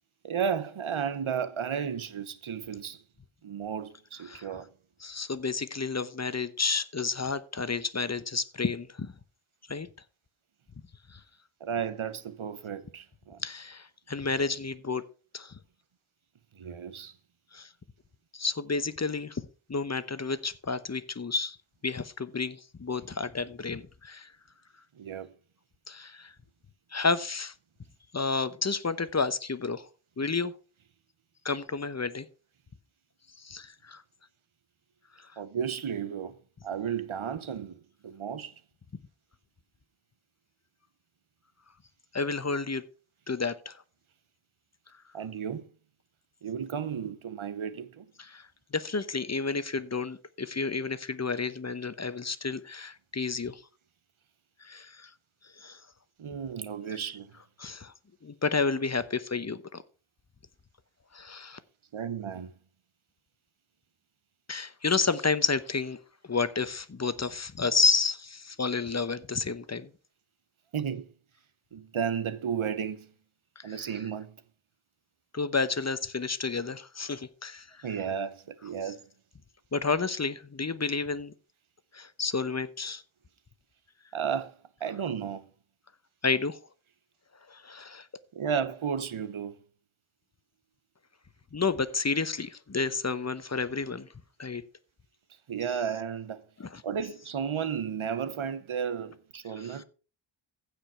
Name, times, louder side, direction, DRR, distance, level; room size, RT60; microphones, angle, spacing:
voice 1, 0.2-3.0 3.4-4.7 11.6-13.4 16.5-17.1 25.0-25.3 35.4-36.3 36.6-38.5 45.1-45.7 46.4-48.1 56.2-57.3 61.9-62.5 70.7-71.1 71.7-73.1 73.6-74.4 77.8-79.0 84.1-84.5 84.8-85.4 88.3-89.6 95.5-96.4 96.8-99.8, right 7 dB, 85° right, 1.1 m, -33 dB
voice 2, 5.0-9.1 9.7-9.9 11.1-11.2 13.4-15.0 15.3-15.6 17.5-17.7 18.3-19.4 19.7-21.6 21.8-24.3 25.9-26.3 26.9-27.5 28.1-29.9 30.2-30.5 31.4-32.3 33.4-34.0 42.1-42.8 43.3-43.8 48.2-53.6 54.6-55.1 55.6-55.8 57.6-57.9 58.2-59.8 61.1-61.6 64.5-66.0 66.3-69.9 73.6-73.9 75.3-77.9 79.7-81.3 81.9-83.0 86.2-86.6 87.5-88.1 91.5-94.1 94.4-94.6 96.6-96.8 99.6-99.8, left 4 dB, 35° left, 0.9 m, -31 dB
15.5 x 5.2 x 5.7 m
wide cardioid pair, 75°, 48 cm